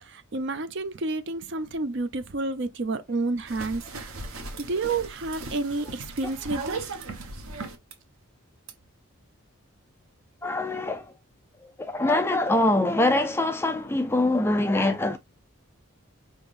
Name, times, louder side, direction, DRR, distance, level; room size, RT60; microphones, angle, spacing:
voice 1, 0.0-4.1 4.6-6.8, right 3 dB, 55° right, 0.6 m, -30 dB
sound 1, 3.5-7.9 8.7-8.8, right 3 dB, 80° right, 1.0 m, -38 dB
voice 2, 10.4-11.1 11.6-15.2, left 2 dB, 10° left, 0.4 m, -24 dB
4.8 x 3.5 x 2.5 m
head